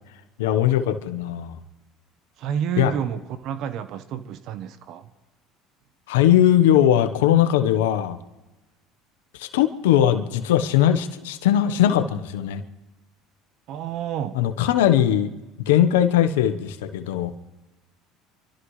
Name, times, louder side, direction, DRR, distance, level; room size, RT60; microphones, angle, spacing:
voice 1, 0.4-1.6 2.8-2.9 6.1-8.2 9.4-12.6 14.3-15.3 15.6-17.3, left 11 dB, 90° left, 9 dB, 1.1 m, -20 dB
voice 2, 2.4-5.1 13.7-14.4, right 9 dB, 60° right, 12 dB, 1.1 m, -29 dB
28.0 x 13.0 x 3.3 m, 1.1 s
supercardioid pair, 90°, 0 cm